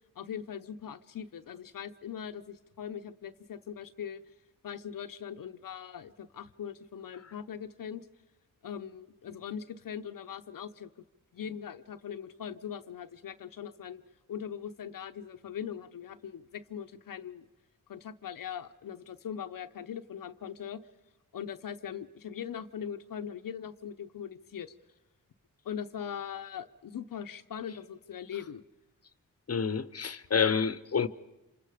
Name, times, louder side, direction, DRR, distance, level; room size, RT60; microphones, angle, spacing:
voice 1, 0.2-4.2 4.6-8.1 8.6-10.9 11.3-14.0 14.3-17.5 17.9-20.8 21.3-24.7 25.6-28.6, left 8 dB, 75° left, 0.8 m, -41 dB
voice 2, 29.5-31.1, left 6 dB, 45° left, 0.9 m, -28 dB
26.5 x 26.5 x 5.0 m
cardioid pair, 50°, 34 cm